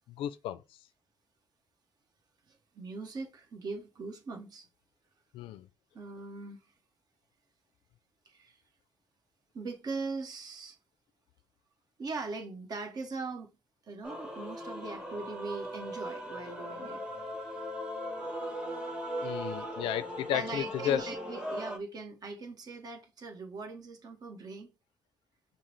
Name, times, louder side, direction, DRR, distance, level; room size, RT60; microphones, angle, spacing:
voice 1, 0.1-0.6 5.3-5.7 19.2-21.0, left 11 dB, 85° left, 0.4 m, -33 dB
voice 2, 2.5-4.7 5.9-6.6 8.2-8.6 9.5-10.8 12.0-13.5 13.8-17.0 20.3-24.7, right 3 dB, 50° right, 1.0 m, -40 dB
Male singing / Female singing / Musical instrument, 14.0-21.8, equal, 10° right, 1.1 m, -38 dB
5.6 x 2.0 x 3.1 m
cardioid pair, 100°, 9 cm